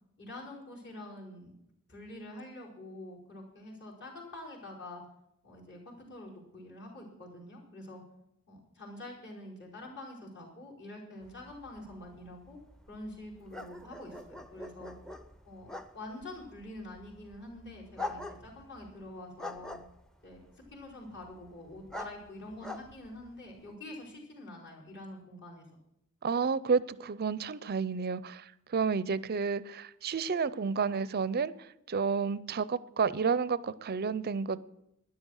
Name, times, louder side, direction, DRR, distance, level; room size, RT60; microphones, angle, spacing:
voice 1, 0.2-1.5 1.9-5.0 5.4-8.0 8.5-12.6 12.9-14.9 15.4-19.8 20.2-20.4 20.7-25.7, left 1 dB, 55° left, -3 dB, 4.6 m, -46 dB
sound 1, 11.2-23.7, left 2 dB, 5° left, 0.6 m, -46 dB
voice 2, 26.2-31.5 31.9-34.6, right 5 dB, 45° right, 18 dB, 0.5 m, -30 dB
13.0 x 10.5 x 6.4 m, 0.80 s
head